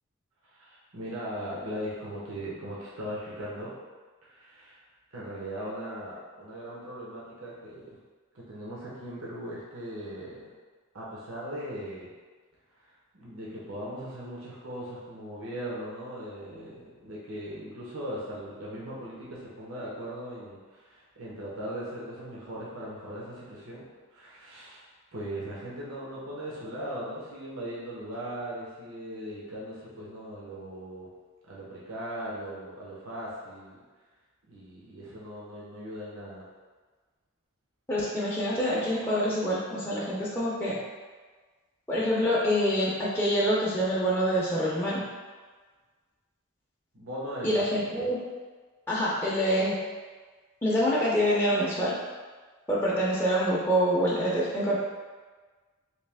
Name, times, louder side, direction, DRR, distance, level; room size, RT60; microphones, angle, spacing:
voice 1, 0.4-3.7 4.2-4.8 5.1-8.0 8.5-10.5 10.9-12.1 12.8-23.9 24.1-31.1 31.4-33.8 34.5-36.4 46.9-48.1, equal, 80° right, -6 dB, 0.8 m, -39 dB
voice 2, 37.9-40.8 41.9-45.0 47.4-48.2 48.9-49.7 50.6-51.9 52.7-54.8, equal, 10° left, -8 dB, 0.5 m, -26 dB
3.2 x 2.8 x 3.4 m, 1.4 s
head